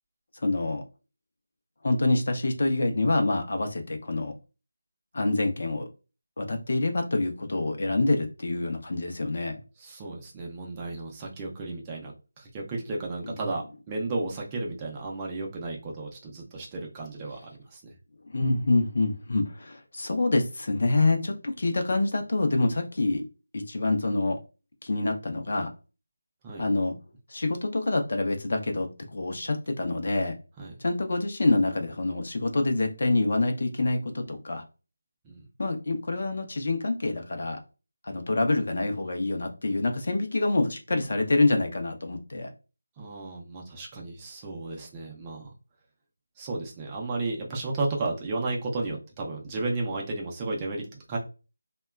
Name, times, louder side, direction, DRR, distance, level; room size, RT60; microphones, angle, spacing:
voice 1, 0.4-0.8 1.8-4.3 5.1-5.9 6.4-9.6 13.3-13.4 18.2-23.2 23.5-24.4 24.8-25.7 26.6-26.9 27.3-30.3 30.8-34.6 35.6-37.6 38.0-42.5, left 2 dB, 55° left, 5 dB, 0.6 m, -26 dB
voice 2, 9.8-17.9 26.4-26.6 30.6-30.7 35.2-35.5 43.0-45.5 46.4-51.2, right 3 dB, 15° right, -1 dB, 0.5 m, -33 dB
2.8 x 2.2 x 2.3 m, 0.32 s
figure-of-eight pair, 165°, 0 cm